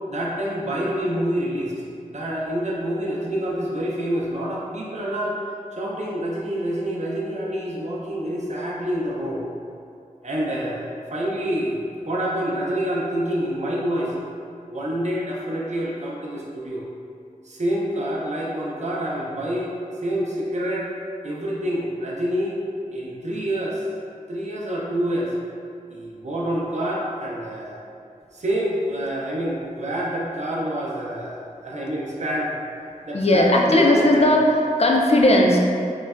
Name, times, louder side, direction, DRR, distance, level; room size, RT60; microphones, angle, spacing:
voice 1, 0.1-1.7 2.1-5.4 5.7-9.4 10.2-14.1 14.7-16.9 17.4-19.7 20.0-20.9 21.2-22.6 22.9-23.8 24.3-25.3 25.9-27.8 28.3-32.6 33.0-34.3, right 1 dB, 55° right, -4 dB, 0.5 m, -27 dB
voice 2, 33.1-35.6, left 1 dB, 45° left, 0 dB, 0.4 m, -17 dB
3.7 x 2.1 x 2.3 m, 2.4 s
wide cardioid pair, 50°, 14 cm